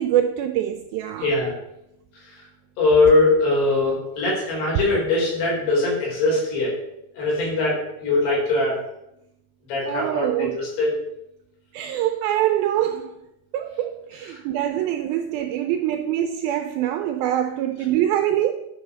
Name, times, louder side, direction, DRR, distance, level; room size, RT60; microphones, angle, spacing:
voice 1, 0.0-1.3 9.9-10.6 11.7-13.2 13.5-18.5, right 11 dB, 85° right, 2.1 m, -24 dB
voice 2, 1.2-1.6 2.8-6.7 7.2-8.8 9.7-11.0, left 2 dB, 75° left, 5.6 m, -21 dB
10.5 x 4.8 x 6.4 m
omnidirectional pair, 4.7 m